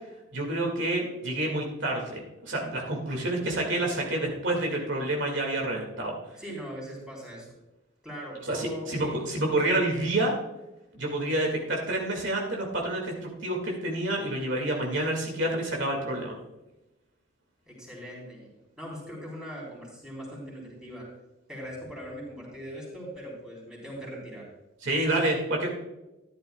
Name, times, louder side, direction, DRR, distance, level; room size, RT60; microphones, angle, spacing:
voice 1, 0.3-6.1 8.5-10.3 10.9-16.4 24.8-25.7, right 1 dB, 65° right, 0 dB, 2.1 m, -28 dB
voice 2, 6.4-7.5 8.0-9.2 17.7-18.5 18.8-21.1 21.5-24.5, equal, 5° right, -4 dB, 4.0 m, -40 dB
13.5 x 11.0 x 2.3 m, 0.98 s
head